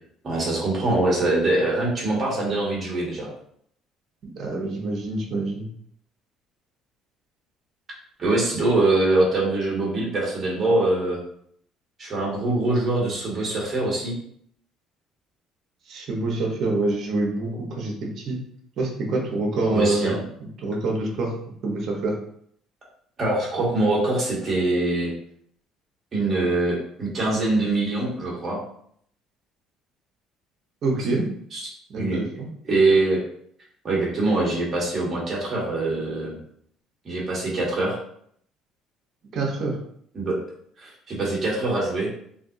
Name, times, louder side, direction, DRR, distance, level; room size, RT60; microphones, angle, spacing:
voice 1, 0.2-3.3 8.2-11.2 12.0-14.2 19.7-20.2 23.2-25.1 26.1-28.6 31.5-31.6 31.9-32.2 32.6-33.2 33.8-36.4 37.0-38.0 40.1-40.4 40.8-42.1, right 2 dB, 30° right, -5 dB, 1.4 m, -23 dB
voice 2, 4.3-5.7 15.9-18.4 18.8-20.2 20.6-21.3 21.6-22.2 30.8-31.3 31.9-32.5 39.3-39.8, right 2 dB, 50° right, 0 dB, 1.0 m, -26 dB
3.4 x 2.7 x 2.7 m, 0.67 s
cardioid pair, 120°, 0 cm